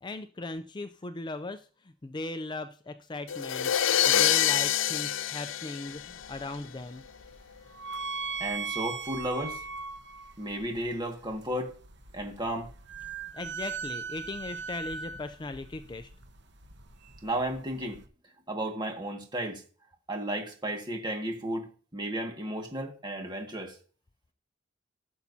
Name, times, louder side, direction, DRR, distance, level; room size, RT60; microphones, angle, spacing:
voice 1, 0.0-3.7 4.1-7.0 13.3-16.1, left 2 dB, 25° left, 0.4 m, -38 dB
sound 1, 3.3-6.6, left 11 dB, 85° left, 0.4 m, -26 dB
sound 2, 5.9-18.1, right 5 dB, 65° right, 1.2 m, -40 dB
voice 2, 8.4-9.6 10.4-11.7 12.1-12.7 17.2-18.0 18.5-19.6 20.1-23.8, right 1 dB, 25° right, 1.8 m, -33 dB
15.5 x 7.1 x 2.8 m
head